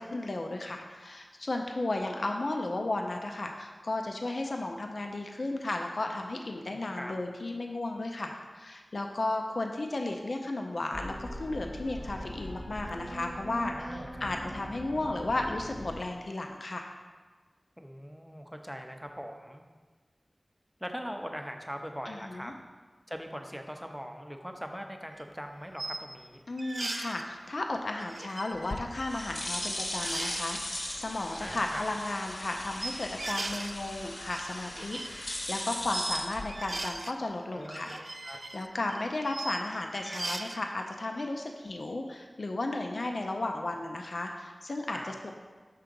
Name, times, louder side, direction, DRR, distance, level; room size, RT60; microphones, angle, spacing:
voice 1, 0.0-16.9 22.1-22.5 26.5-45.3, left 2 dB, 75° left, 3 dB, 0.5 m, -34 dB
voice 2, 6.6-7.1 13.7-14.4 17.8-19.6 20.8-22.5 23.1-26.4 31.4-31.9 37.5-37.8 38.2-38.4 44.9-45.1, equal, ahead, 4 dB, 0.6 m, -41 dB
sound 1, 10.9-16.0, equal, 30° left, 1.0 m, -41 dB
sound 2, 25.1-25.2 25.8-26.1 26.6-27.3 28.0-29.3 29.5-29.7 30.0-30.6 31.3-31.8 32.8-33.7 34.1-36.2 36.5-37.1 37.6-39.6 40.0-40.6, right 2 dB, 55° right, 0.3 m, -39 dB
sound 3, 28.5-37.0, left 1 dB, 60° left, 0.9 m, -38 dB
5.8 x 3.7 x 5.2 m, 1.4 s
wide cardioid pair, 55°, 0 cm